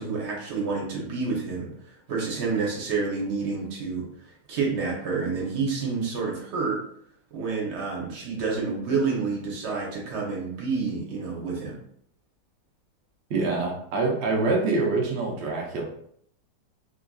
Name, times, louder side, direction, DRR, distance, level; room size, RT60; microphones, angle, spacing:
voice 1, 0.0-6.8 7.3-11.8, right 4 dB, 55° right, -2 dB, 0.9 m, -29 dB
voice 2, 13.3-15.8, right 3 dB, 85° right, 0 dB, 0.5 m, -25 dB
2.8 x 2.5 x 2.2 m, 0.66 s
omnidirectional pair, 1.7 m